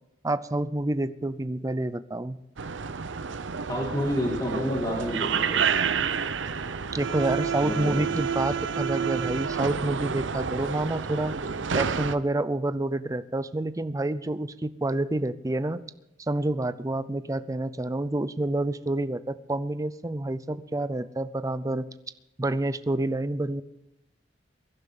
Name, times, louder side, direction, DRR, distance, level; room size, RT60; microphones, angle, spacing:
voice 1, 0.2-2.4 6.9-11.4 11.7-15.8 16.3-21.9 22.4-23.6, right 2 dB, 15° right, 13 dB, 0.5 m, -28 dB
sound 1, 2.6-12.2, right 6 dB, 75° right, 0.7 m, -29 dB
voice 2, 3.7-5.7 7.6-8.1, equal, 20° left, -4 dB, 2.4 m, -29 dB
23.0 x 11.5 x 3.8 m, 0.89 s
head